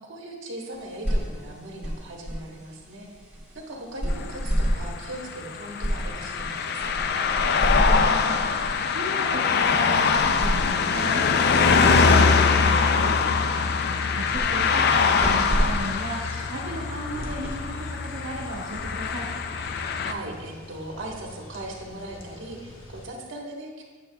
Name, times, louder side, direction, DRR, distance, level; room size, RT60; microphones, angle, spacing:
voice 1, 0.0-3.3 3.5-6.9 13.5-14.0 19.5-23.8, right 1 dB, 65° right, -1 dB, 1.3 m, -39 dB
sound 1, 0.7-19.6, equal, 5° right, 2.2 m, -32 dB
sound 2, 4.1-20.1, left 5 dB, 55° left, 0.4 m, -23 dB
voice 2, 7.8-8.4 8.9-13.2 14.1-19.3, right 1 dB, 85° right, -3 dB, 0.8 m, -35 dB
Sizzling Seabed, 14.1-23.1, left 1 dB, 85° left, 1.0 m, -44 dB
8.9 x 6.6 x 2.3 m, 1.4 s
head